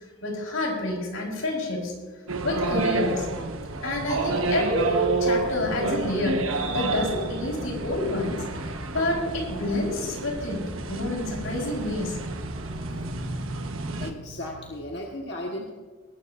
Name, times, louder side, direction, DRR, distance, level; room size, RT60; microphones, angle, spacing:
voice 1, 0.2-1.9 2.4-3.3 3.8-8.4 8.9-12.2, left 1 dB, 85° left, 0 dB, 4.4 m, -28 dB
sound 1, 1.3-15.1, right 1 dB, 30° right, 2.7 m, -46 dB
sound 2, 2.3-14.1, right 3 dB, 80° right, 1.3 m, -30 dB
voice 2, 14.0-15.7, left 1 dB, 55° left, -1 dB, 1.5 m, -36 dB
19.5 x 14.0 x 2.6 m, 1.4 s
head